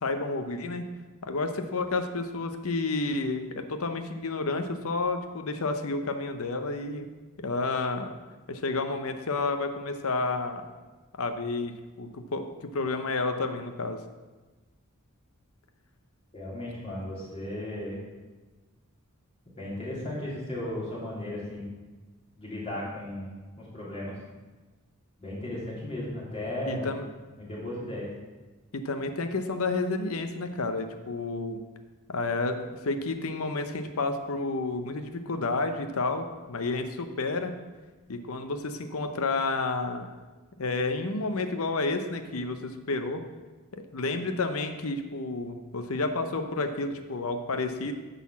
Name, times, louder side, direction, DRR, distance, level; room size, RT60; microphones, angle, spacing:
voice 1, 0.0-0.8 1.2-7.1 7.4-8.1 8.5-10.6 11.2-14.0 26.7-27.1 28.7-31.6 32.1-37.5 38.1-40.1 40.6-43.2 43.7-47.9, left 3 dB, 70° left, 7 dB, 0.7 m, -30 dB
voice 2, 16.3-18.0 19.6-21.6 22.4-24.2 25.2-26.9 27.4-28.1, left 1 dB, 25° left, -6 dB, 3.1 m, -35 dB
9.7 x 4.1 x 7.3 m, 1.3 s
head